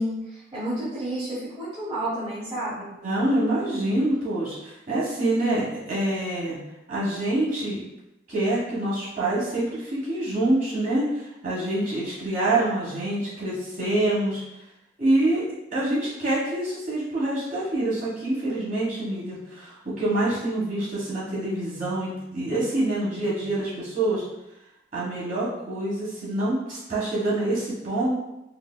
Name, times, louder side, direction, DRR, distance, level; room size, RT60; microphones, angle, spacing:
voice 1, 0.0-2.9, right 1 dB, 25° right, -12 dB, 1.2 m, -30 dB
voice 2, 3.0-6.6 6.9-7.8 8.3-14.4 15.0-15.4 15.7-24.2 24.9-28.1, right 1 dB, 40° right, -8 dB, 1.4 m, -26 dB
4.6 x 2.8 x 2.2 m, 0.93 s
head